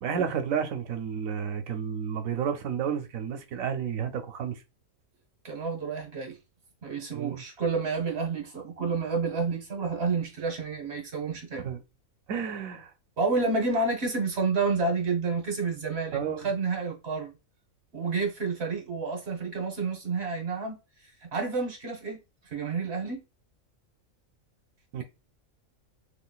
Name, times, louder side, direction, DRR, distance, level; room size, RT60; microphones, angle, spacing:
voice 1, 0.0-4.6 7.1-7.4 11.6-11.8 12.3-12.9 16.1-16.5 24.9-25.0, right 7 dB, 75° right, 1.1 m, -31 dB
voice 2, 5.4-6.4 6.8-11.6 13.2-17.3 17.9-20.7 21.2-22.2 22.5-23.2, right 4 dB, 50° right, 1.2 m, -29 dB
3.8 x 2.8 x 2.3 m
omnidirectional pair, 1.4 m